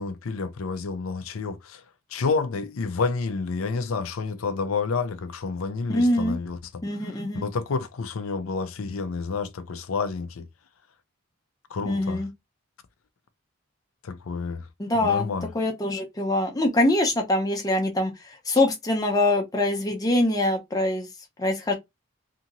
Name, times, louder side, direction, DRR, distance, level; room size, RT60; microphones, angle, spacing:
voice 1, 0.0-1.8 2.1-6.8 7.3-10.5 11.7-12.2 14.0-14.7 15.0-15.5, left 4 dB, 80° left, 0.5 m, -29 dB
voice 2, 5.9-6.4 6.8-7.5 11.8-12.3 14.8-18.1 18.5-21.1 21.4-21.7, left 1 dB, 20° left, 0.7 m, -24 dB
2.8 x 2.8 x 2.5 m
head